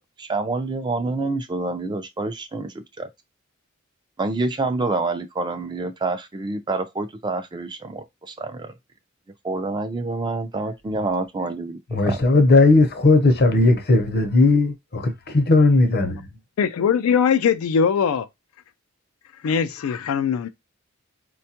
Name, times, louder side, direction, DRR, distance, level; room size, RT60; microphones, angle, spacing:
voice 1, 0.2-3.1 4.2-8.7 9.4-12.2, right 3 dB, 20° right, 0.4 m, -27 dB
voice 2, 11.9-14.7 15.3-16.3, left 2 dB, 50° left, 0.7 m, -16 dB
voice 3, 16.6-18.3 19.4-20.5, left 6 dB, 75° left, 0.4 m, -21 dB
4.3 x 2.2 x 2.8 m
head